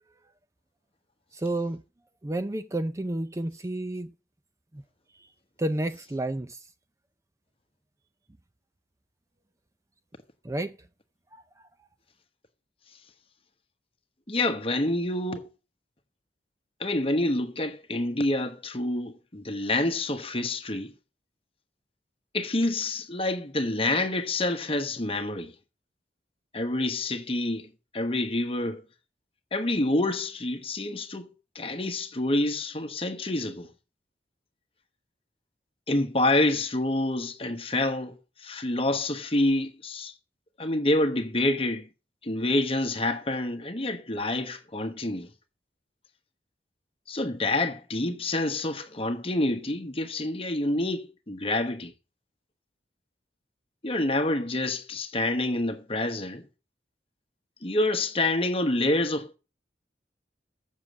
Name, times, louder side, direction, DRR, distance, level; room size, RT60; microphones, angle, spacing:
voice 1, 1.3-1.8 2.2-4.1 4.7-4.8 5.2-5.3 5.6-6.7 10.4-10.8 11.3-11.7, right 1 dB, 15° right, 0.5 m, -31 dB
voice 2, 14.3-15.5 16.8-20.9 22.3-25.5 26.5-28.8 29.5-31.3 31.5-33.7 35.9-40.1 40.6-41.9 42.2-45.3 47.1-51.9 53.8-56.4 57.6-59.4, left 2 dB, 35° left, 1.2 m, -27 dB
7.5 x 7.3 x 8.1 m
head